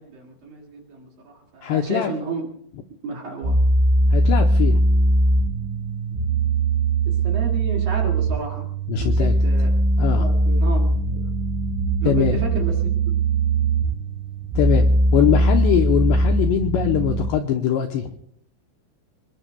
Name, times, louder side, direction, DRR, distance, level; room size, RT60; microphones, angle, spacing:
voice 1, 0.0-2.4 3.0-3.6 7.1-8.7 8.9-9.8 10.2-11.2 12.0-13.1, right 2 dB, 50° right, 0 dB, 3.3 m, -32 dB
voice 2, 1.6-2.1 4.1-4.8 8.9-9.3 10.0-10.3 12.0-12.4 14.6-14.9 15.1-18.1, left 9 dB, 80° left, 4 dB, 2.6 m, -22 dB
sound 1, 3.4-17.3, right 2 dB, 70° right, 6.7 m, -20 dB
26.0 x 21.5 x 2.3 m, 0.65 s
omnidirectional pair, 6.0 m